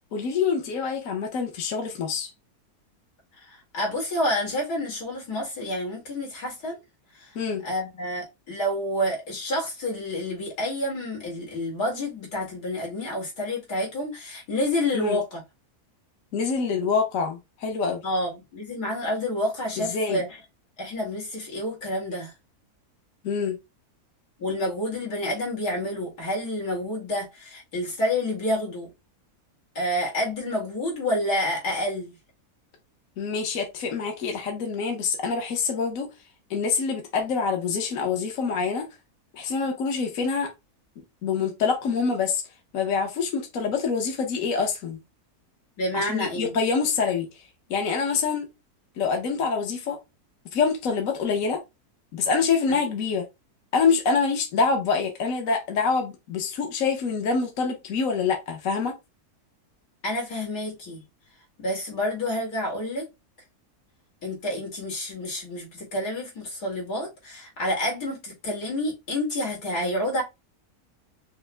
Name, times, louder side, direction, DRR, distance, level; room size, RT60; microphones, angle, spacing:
voice 1, 0.1-2.3 7.3-7.6 14.9-15.2 16.3-18.0 19.9-20.2 23.2-23.6 33.2-36.1 36.5-38.9 39.3-40.5 41.2-42.4 42.7-45.0 45.9-47.4 47.7-48.5 49.0-50.0 50.5-51.6 52.1-53.3 53.7-59.0, left 5 dB, 65° left, 1.2 m, -26 dB
voice 2, 3.3-6.8 7.1-7.4 7.6-15.4 18.0-20.4 20.8-22.3 24.4-28.9 29.8-32.2 45.8-46.5 52.7-52.8 60.0-61.0 61.6-63.1 64.2-70.2, left 1 dB, 85° left, 2.5 m, -29 dB
5.3 x 2.1 x 3.3 m
omnidirectional pair, 1.6 m